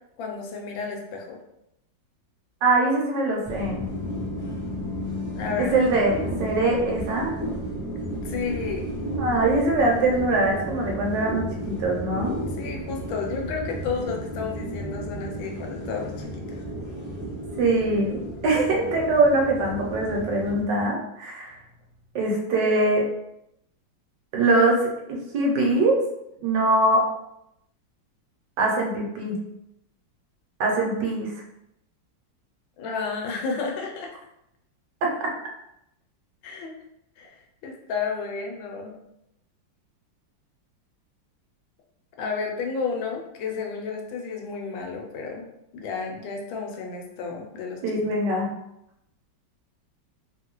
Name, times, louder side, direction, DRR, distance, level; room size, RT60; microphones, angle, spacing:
voice 1, 0.2-1.4 5.4-5.7 8.1-8.9 12.6-16.6 32.8-34.1 36.4-36.7 37.2-39.0 42.2-45.5 45.7-47.8, left 5 dB, 80° left, 1 dB, 1.4 m, -32 dB
voice 2, 2.6-3.8 5.7-7.3 9.2-12.3 17.6-21.6 22.1-23.0 24.3-26.0 26.4-27.0 28.6-29.4 30.6-31.3 47.8-48.5, right 2 dB, 75° right, -1 dB, 1.2 m, -22 dB
sound 1, 3.4-20.6, equal, 10° right, 1.2 m, -33 dB
2.9 x 2.6 x 2.9 m, 0.81 s
omnidirectional pair, 2.1 m